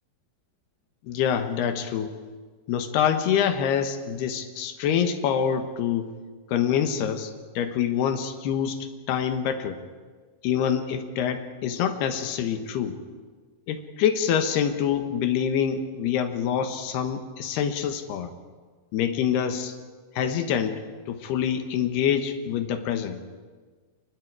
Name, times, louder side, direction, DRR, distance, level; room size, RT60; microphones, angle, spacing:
voice 1, 1.0-2.2 2.7-6.1 6.5-9.8 10.4-13.0 13.7-18.3 18.9-19.8 20.2-20.8 21.1-23.2, left 8 dB, 75° left, 8 dB, 3.3 m, -26 dB
29.5 x 23.5 x 4.8 m, 1.5 s
omnidirectional pair, 4.8 m